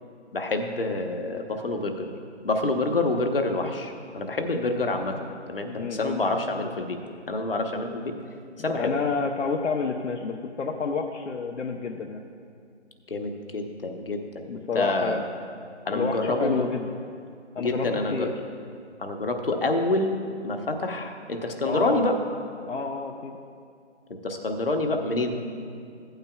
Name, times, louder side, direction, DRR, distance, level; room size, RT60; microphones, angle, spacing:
voice 1, 0.3-2.1 2.4-5.2 5.5-7.0 7.3-8.1 8.6-9.0 13.1-14.4 14.7-15.2 15.8-16.7 17.6-18.3 19.0-22.2 24.2-25.3, left 2 dB, 50° left, 4 dB, 1.0 m, -27 dB
voice 2, 5.8-6.2 8.6-12.2 14.5-15.2 15.9-16.9 17.5-18.3 21.7-22.0 22.6-23.4 25.5-25.6, left 4 dB, 80° left, 2 dB, 0.8 m, -29 dB
15.5 x 9.0 x 2.3 m, 2.3 s
figure-of-eight pair, 170°, 35 cm